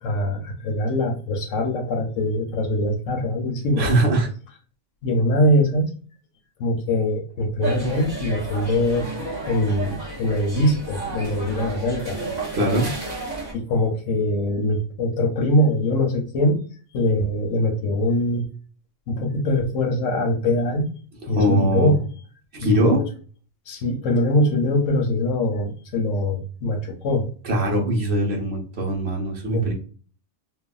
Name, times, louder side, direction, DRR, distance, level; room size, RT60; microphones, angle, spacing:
voice 1, 0.0-3.9 5.0-5.9 6.6-9.1 9.4-12.2 13.5-16.6 16.9-18.5 19.1-20.9 21.3-22.0 22.6-23.0 23.7-27.3 29.5-29.7, left 1 dB, 85° left, 4 dB, 1.2 m, -22 dB
voice 2, 3.8-4.3 12.5-12.9 21.3-21.9 22.5-23.0 27.5-29.7, right 1 dB, 60° right, 0 dB, 1.1 m, -21 dB
sound 1, 7.6-13.5, right 2 dB, 35° right, 1.1 m, -32 dB
3.3 x 2.2 x 2.3 m, 0.41 s
omnidirectional pair, 1.3 m